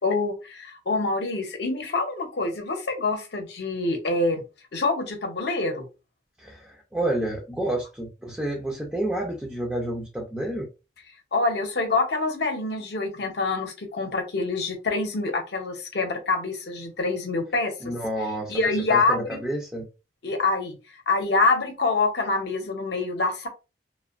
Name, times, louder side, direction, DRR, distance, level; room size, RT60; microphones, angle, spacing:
voice 1, 0.0-4.4 4.7-5.9 11.3-17.7 18.5-19.4 20.2-20.8 21.1-23.5, left 3 dB, 60° left, 0.7 m, -26 dB
voice 2, 6.4-10.7 17.8-18.6 18.9-19.8, right 1 dB, 5° right, 0.4 m, -29 dB
2.5 x 2.2 x 2.4 m
head